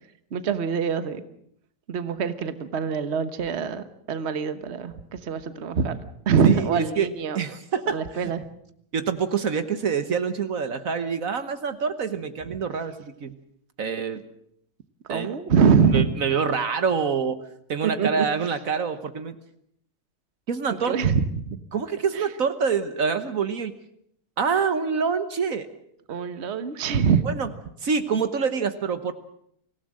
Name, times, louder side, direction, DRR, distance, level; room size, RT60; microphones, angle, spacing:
voice 1, 0.3-1.2 1.9-6.0 6.3-7.4 7.9-8.4 15.1-16.1 17.8-18.2 20.7-21.6 22.1-22.3 26.1-27.2, right 6 dB, 45° right, 11 dB, 1.4 m, -24 dB
voice 2, 6.4-7.1 7.3-8.0 8.9-13.3 13.8-14.2 15.1-15.3 15.9-17.4 17.7-19.3 20.5-20.9 21.7-23.7 24.4-25.7 27.2-27.5 27.8-29.1, right 6 dB, 65° right, 11 dB, 1.5 m, -26 dB
25.5 x 16.5 x 7.6 m, 0.70 s
omnidirectional pair, 1.6 m